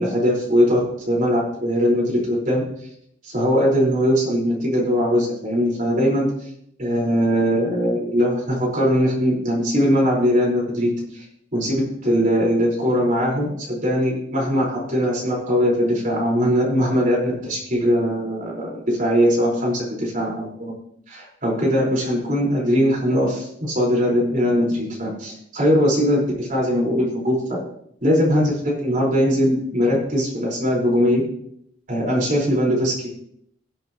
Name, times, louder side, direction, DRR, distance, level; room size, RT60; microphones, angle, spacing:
voice 1, 0.0-2.6 3.2-6.3 6.8-11.2 11.5-20.7 21.1-27.6 28.0-31.2 31.9-33.1, equal, 45° right, -3 dB, 4.9 m, -20 dB
18.0 x 8.1 x 3.1 m, 0.69 s
head